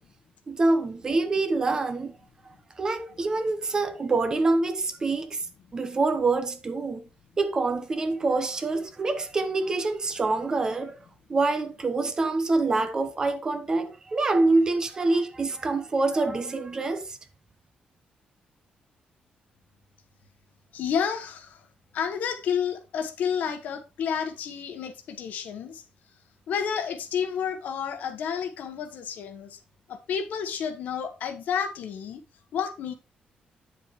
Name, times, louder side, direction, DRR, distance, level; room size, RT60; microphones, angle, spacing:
voice 1, 0.5-2.2 2.8-5.4 5.7-7.1 7.4-11.0 11.3-17.2, right 3 dB, 25° right, 0.9 m, -26 dB
voice 2, 20.7-21.6 21.9-25.8 26.5-29.6 29.9-32.2 32.5-32.9, left 7 dB, 70° left, 1.3 m, -30 dB
8.9 x 7.4 x 3.1 m
wide cardioid pair, 180°, 3 cm